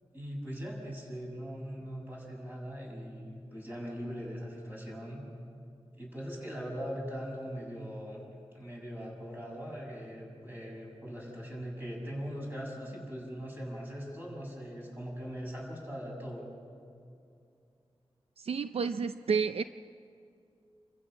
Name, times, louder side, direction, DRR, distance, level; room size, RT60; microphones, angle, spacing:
voice 1, 0.1-5.2 6.0-8.2 8.5-16.5, equal, 20° right, -3 dB, 6.7 m, -40 dB
voice 2, 18.4-19.6, right 5 dB, 70° right, 10 dB, 0.5 m, -30 dB
28.5 x 15.0 x 6.3 m, 2.5 s
wide cardioid pair, 95°, 10 cm